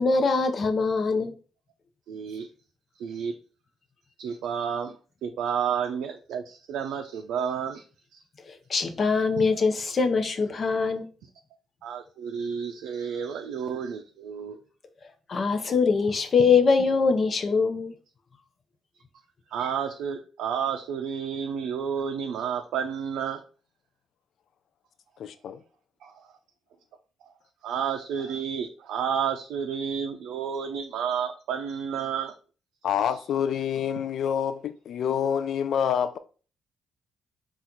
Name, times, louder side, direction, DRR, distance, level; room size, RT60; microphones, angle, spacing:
voice 1, 0.0-1.3 8.5-11.1 15.3-17.9, left 4 dB, 40° left, 0.7 m, -23 dB
voice 2, 2.1-2.5 3.0-3.3 4.2-4.9 5.2-7.8 9.4-9.5 11.8-14.6 19.5-23.4 26.0-26.3 27.6-32.3, right 7 dB, 80° right, 0.4 m, -31 dB
voice 3, 25.2-25.6 32.8-36.2, left 8 dB, 65° left, 0.3 m, -27 dB
4.3 x 2.4 x 3.8 m
cardioid pair, 90°, 0 cm